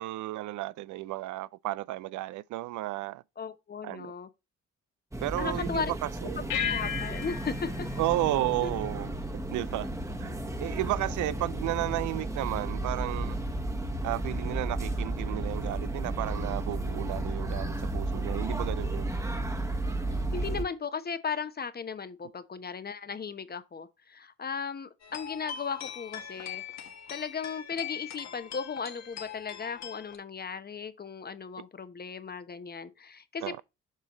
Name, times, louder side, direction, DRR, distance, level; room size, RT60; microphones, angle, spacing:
voice 1, 0.0-3.2 3.8-4.1 5.2-6.5 8.0-9.2 9.5-9.9 10.2-13.4 14.0-19.1 33.4-33.6, right 16 dB, 75° right, 0.5 m, -33 dB
voice 2, 3.4-4.3 5.4-5.9 6.5-7.9 8.6-8.7 20.3-26.6 27.1-33.6, left 6 dB, 30° left, 1.0 m, -36 dB
sound 1, 5.1-20.6, right 1 dB, 10° right, 1.2 m, -33 dB
sound 2, 6.5-9.3, left 9 dB, 85° left, 0.9 m, -36 dB
sound 3, 25.0-30.2, left 9 dB, 60° left, 1.5 m, -42 dB
7.4 x 5.6 x 3.1 m
cardioid pair, 90°, 30 cm